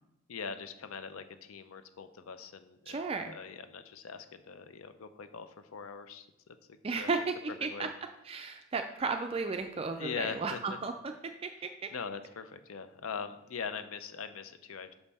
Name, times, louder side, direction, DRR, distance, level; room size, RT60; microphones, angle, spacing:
voice 1, 0.3-3.0 3.2-6.3 6.7-7.1 7.6-7.9 9.9-10.8 11.9-14.9, left 6 dB, 75° left, 10 dB, 0.5 m, -41 dB
voice 2, 2.9-3.3 6.8-7.9 8.2-11.9, right 4 dB, 25° right, 6 dB, 0.3 m, -34 dB
5.9 x 5.4 x 4.1 m, 0.90 s
head